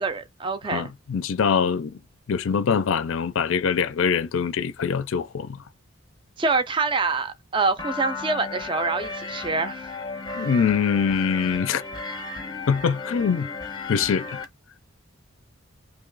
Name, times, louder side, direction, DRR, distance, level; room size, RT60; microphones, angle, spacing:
voice 1, 0.0-0.9 6.4-9.9, right 4 dB, 25° right, 0.4 m, -26 dB
voice 2, 0.7-2.0 2.3-5.6 10.3-11.8 12.7-13.5 13.9-14.4, left 6 dB, 70° left, 0.4 m, -23 dB
sound 1, 7.8-14.5, left 4 dB, 20° left, 0.7 m, -34 dB
2.9 x 2.8 x 3.9 m
head